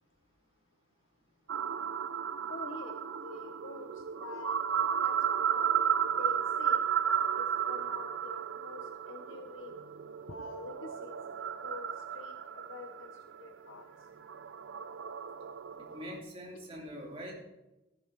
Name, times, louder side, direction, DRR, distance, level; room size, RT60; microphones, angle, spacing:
sound 1, 1.5-16.2, right 8 dB, 70° right, 0.5 m, -33 dB
voice 1, 2.5-5.7 6.2-9.8 10.3-13.9, left 4 dB, 80° left, 6 dB, 0.8 m, -47 dB
voice 2, 15.9-17.3, equal, 30° right, -2 dB, 2.6 m, -43 dB
14.0 x 11.0 x 3.3 m, 1.0 s
head